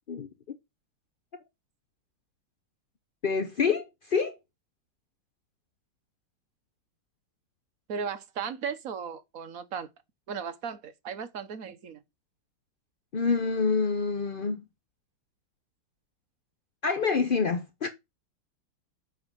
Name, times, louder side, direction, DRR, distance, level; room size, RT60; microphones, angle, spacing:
voice 1, 3.2-4.4 13.1-14.6 16.8-17.9, left 5 dB, 65° left, 0.5 m, -27 dB
voice 2, 7.9-9.9 10.3-12.0, right 6 dB, 55° right, 1.2 m, -36 dB
7.7 x 5.0 x 5.2 m
omnidirectional pair, 2.1 m